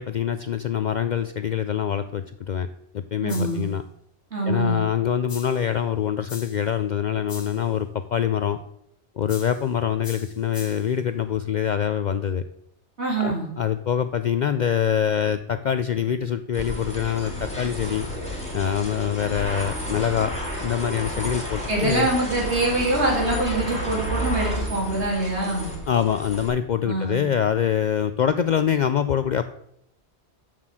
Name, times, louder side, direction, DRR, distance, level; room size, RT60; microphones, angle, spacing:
voice 1, 0.0-2.7 2.9-3.8 4.5-8.6 9.2-12.4 13.2-18.1 18.5-20.3 20.6-22.1 25.9-29.4, left 8 dB, 55° left, 11 dB, 0.5 m, -24 dB
voice 2, 3.2-3.7 4.3-4.8 13.0-13.5 21.7-25.7 26.9-27.2, right 2 dB, 80° right, -2 dB, 3.5 m, -24 dB
sound 1, 3.3-3.7 5.3-5.7 6.3-6.7 7.3-7.7 9.3-9.7 10.0-10.9, left 4 dB, 85° left, 1.8 m, -41 dB
sound 2, 16.5-26.5, equal, 5° left, 3.5 m, -31 dB
7.3 x 6.7 x 7.5 m, 0.77 s
omnidirectional pair, 1.1 m